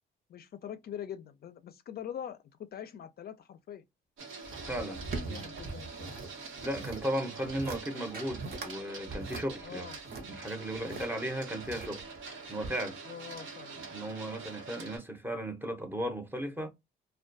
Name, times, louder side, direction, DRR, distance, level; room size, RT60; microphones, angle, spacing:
voice 1, 0.3-3.8 4.7-6.2 9.6-10.0 10.9-11.0 13.0-13.8, left 9 dB, 50° left, 0.4 m, -44 dB
Printer, 4.2-15.0, right 4 dB, 90° right, 1.0 m, -45 dB
sound 1, 4.4-6.3 6.6-7.1 7.4-7.8 8.1-8.7 9.1-11.1 11.6-12.2 12.6-12.7, right 3 dB, 50° right, 0.8 m, -41 dB
voice 2, 4.7-5.4 6.6-12.1 12.5-13.0 13.7-16.7, right 1 dB, 10° right, 0.7 m, -36 dB
2.2 x 2.2 x 2.5 m
cardioid pair, 90°, 20 cm